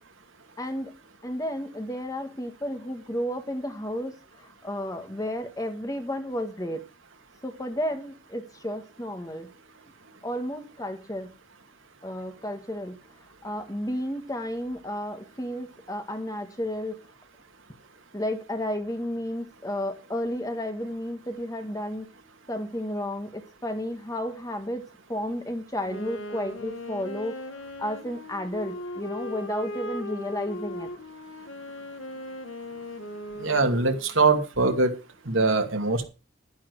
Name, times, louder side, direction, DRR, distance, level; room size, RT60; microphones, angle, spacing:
voice 1, 0.6-0.9 1.2-6.8 7.4-9.5 10.2-11.3 12.0-13.0 13.4-17.0 18.1-22.0 22.5-24.8 25.1-27.4 27.8-30.9, equal, 15° left, 1.6 m, -32 dB
Wind instrument woodwind instrument, 25.8-34.2, left 1 dB, 70° left, 1.9 m, -38 dB
voice 2, 33.4-34.9 35.3-36.1, right 3 dB, 70° right, 2.4 m, -22 dB
11.5 x 10.5 x 4.7 m
head